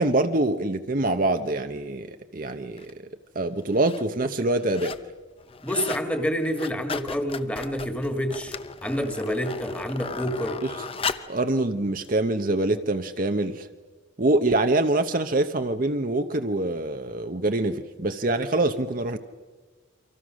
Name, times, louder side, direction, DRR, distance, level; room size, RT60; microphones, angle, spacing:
voice 1, 0.0-3.1 3.3-5.0 11.3-13.7 14.2-19.2, right 2 dB, 40° right, 7 dB, 0.8 m, -25 dB
sound 1, 2.8-2.9 3.6-4.0 4.4-5.1 5.4-6.1 6.4-11.4 12.0-12.1, left 4 dB, 25° left, 0.7 m, -35 dB
voice 2, 5.6-8.6 8.8-10.6, equal, 5° left, 6 dB, 1.9 m, -28 dB
29.5 x 25.0 x 6.3 m, 1.3 s
head